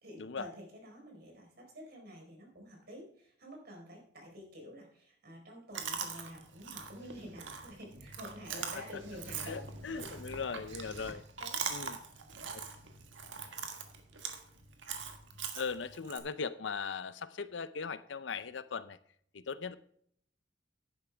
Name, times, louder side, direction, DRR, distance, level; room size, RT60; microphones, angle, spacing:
voice 1, 0.0-9.7 9.9-10.2 11.4-11.6, equal, 60° right, 1 dB, 4.3 m, -49 dB
Chewing mastication, 5.7-16.2, right 6 dB, 85° right, 1.6 m, -42 dB
voice 2, 9.5-11.2 11.7-12.0 12.5-12.6 15.5-19.0 19.3-19.8, left 5 dB, 75° left, 14 dB, 0.6 m, -39 dB
11.0 x 9.8 x 3.4 m, 0.64 s
head